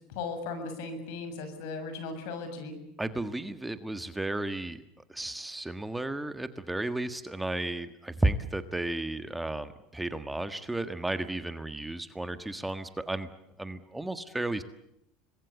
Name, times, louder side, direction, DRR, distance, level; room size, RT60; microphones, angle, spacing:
voice 1, 0.1-2.8, left 4 dB, 70° left, 9 dB, 6.9 m, -37 dB
voice 2, 3.0-4.8 5.1-13.3 13.6-14.6, right 2 dB, 5° right, 10 dB, 1.5 m, -33 dB
26.5 x 21.0 x 8.4 m, 0.81 s
supercardioid pair, 110°, 0 cm